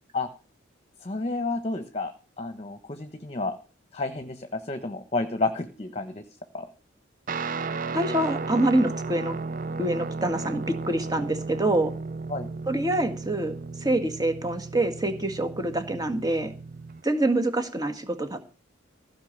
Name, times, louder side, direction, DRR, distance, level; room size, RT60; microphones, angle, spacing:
voice 1, 1.0-3.6 3.9-6.2 6.5-6.7 12.3-12.5, left 3 dB, 30° left, 9 dB, 1.1 m, -31 dB
Guitar, 7.3-17.0, right 4 dB, 45° right, 0.5 m, -34 dB
voice 2, 7.9-9.4 9.8-11.9 12.7-16.5 17.0-18.5, right 1 dB, 20° right, 7 dB, 1.8 m, -26 dB
15.5 x 5.7 x 8.8 m, 0.37 s
head